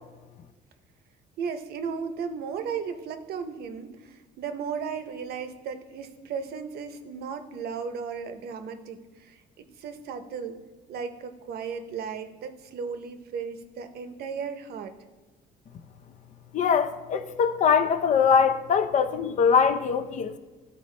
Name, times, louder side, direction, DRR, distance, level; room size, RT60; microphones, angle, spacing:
voice 1, 1.4-10.6 10.9-14.9, right 6 dB, 70° right, 0.7 m, -35 dB
voice 2, 16.5-20.3, left 6 dB, 45° left, 0.5 m, -22 dB
12.5 x 4.2 x 3.2 m
cardioid pair, 110°, 17 cm